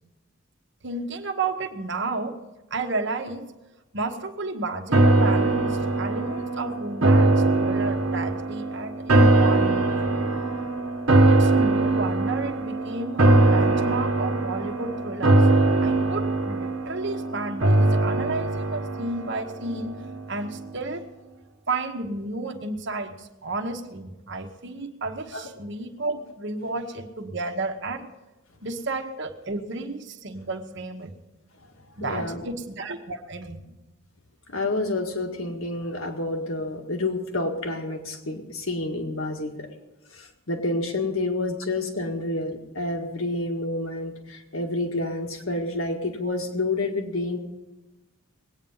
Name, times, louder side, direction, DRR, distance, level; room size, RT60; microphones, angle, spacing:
voice 1, 0.8-2.4 2.7-3.5 3.9-10.1 11.3-15.5 15.8-20.0 20.3-21.0 21.7-28.1 28.6-31.1 32.0-33.6, right 3 dB, 60° right, 5 dB, 1.2 m, -32 dB
sound 1, 4.9-20.2 20.6-20.7, right 2 dB, 80° right, 1.3 m, -21 dB
voice 2, 32.0-32.5 34.5-39.7 40.1-47.4, left 2 dB, 85° left, 3 dB, 2.0 m, -29 dB
20.5 x 9.2 x 5.5 m, 1.1 s
head